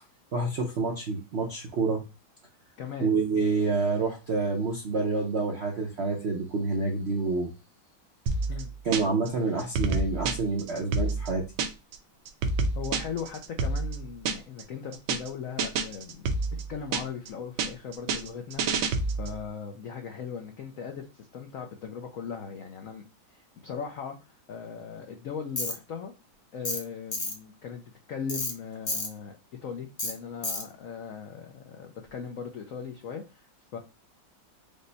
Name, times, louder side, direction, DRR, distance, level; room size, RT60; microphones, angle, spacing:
voice 1, 0.3-2.0 3.0-7.5 8.8-11.5, right 3 dB, 65° right, 0 dB, 0.6 m, -28 dB
voice 2, 2.8-3.1 8.5-8.7 12.7-18.6 19.2-23.0 23.3-26.1 26.5-29.4 29.6-33.8, left 6 dB, 75° left, 4 dB, 0.7 m, -39 dB
sound 1, 8.3-9.3 9.6-12.0 12.3-14.6 14.9-15.3 15.6-17.3 17.6-19.4, right 3 dB, 80° right, 1.4 m, -28 dB
Tools, 25.6-25.7 26.6-26.8 27.1-27.3 28.3-28.5 28.9-29.1 30.0-30.1 30.4-30.6, left 2 dB, 35° left, 0.6 m, -30 dB
5.2 x 2.1 x 3.9 m, 0.28 s
omnidirectional pair, 2.1 m